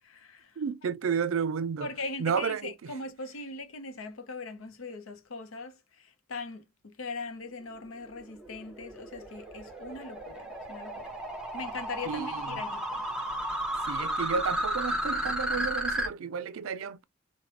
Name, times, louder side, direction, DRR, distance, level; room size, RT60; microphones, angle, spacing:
voice 1, 0.0-0.6 1.8-11.2 11.5-13.0, left 3 dB, 80° left, 0.7 m, -40 dB
voice 2, 0.6-1.9 2.2-2.9 12.1-12.5 13.9-17.0, right 6 dB, 80° right, 0.4 m, -32 dB
sound 1, 8.0-16.1, right 1 dB, 5° right, 0.9 m, -33 dB
3.2 x 2.1 x 3.0 m
head